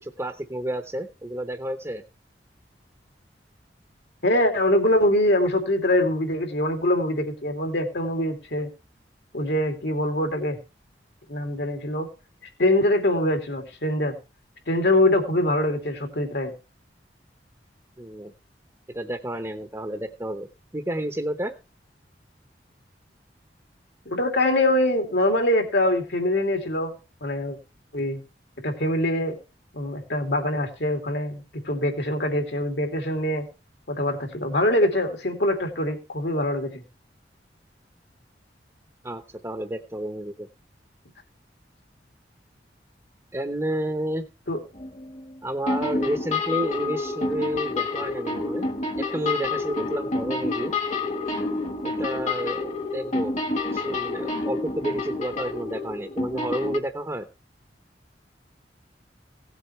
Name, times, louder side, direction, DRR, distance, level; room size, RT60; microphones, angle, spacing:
voice 1, 0.0-2.0 18.0-18.3 18.9-21.5 39.0-40.5 43.3-44.2 45.4-48.7 49.0-50.7 51.8-53.4 53.7-57.3, right 1 dB, 15° right, 6 dB, 0.9 m, -30 dB
voice 2, 4.2-8.7 9.3-10.6 11.3-12.1 12.6-14.2 14.7-16.5 24.1-26.9 27.2-27.6 27.9-28.2 28.6-29.4 29.7-33.5 33.9-36.8 44.5-44.6, left 1 dB, 70° left, 4 dB, 2.8 m, -23 dB
sound 1, 44.8-45.4 45.7-56.8, left 3 dB, 40° left, 1.6 m, -29 dB
17.0 x 8.0 x 3.2 m, 0.31 s
head